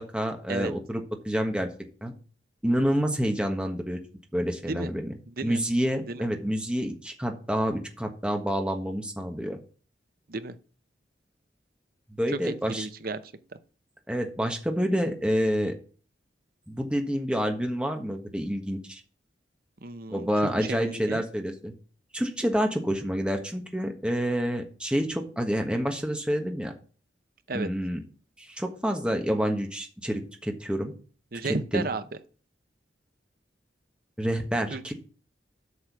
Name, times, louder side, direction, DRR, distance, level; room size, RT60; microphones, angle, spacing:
voice 1, 0.1-1.7 2.0-2.1 2.6-4.0 4.3-5.1 5.4-9.6 12.2-12.9 14.1-15.7 16.7-19.0 20.1-21.7 22.1-26.7 27.5-28.0 28.4-30.9 31.7-31.8 34.2-34.9, equal, 5° right, 1.4 m, -28 dB
voice 2, 5.3-5.6 6.0-6.3 10.3-10.5 12.3-13.3 19.8-21.2 27.5-27.7 31.3-32.0 34.7-34.9, right 3 dB, 55° right, 0.8 m, -33 dB
8.4 x 6.2 x 6.1 m
head